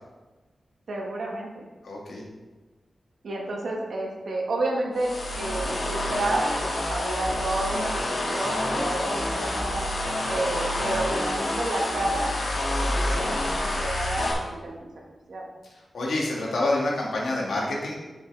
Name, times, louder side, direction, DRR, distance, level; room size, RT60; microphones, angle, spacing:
voice 1, 0.9-1.7 3.2-9.9 10.3-12.4 12.8-14.9 15.3-15.5, right 2 dB, 75° right, -1 dB, 1.5 m, -30 dB
voice 2, 1.8-2.2 9.4-9.6 12.8-13.0 15.9-17.9, left 2 dB, 85° left, -3 dB, 2.2 m, -28 dB
sound 1, 5.0-14.3, left 1 dB, 65° left, 2.2 m, -28 dB
8.7 x 7.2 x 3.4 m, 1.2 s
wide cardioid pair, 150°, 0 cm